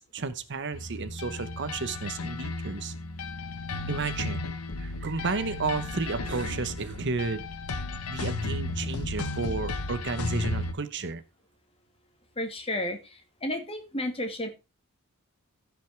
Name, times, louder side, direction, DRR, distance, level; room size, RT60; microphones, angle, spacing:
voice 1, 0.1-2.9 3.9-4.5 4.8-7.4 8.1-11.2, right 4 dB, 50° right, 13 dB, 0.9 m, -32 dB
sound 1, 0.7-10.7, left 2 dB, 85° left, 1.3 m, -34 dB
voice 2, 12.4-13.0 13.4-14.5, left 1 dB, 25° left, 5 dB, 2.1 m, -31 dB
15.0 x 5.4 x 4.6 m, 0.28 s
head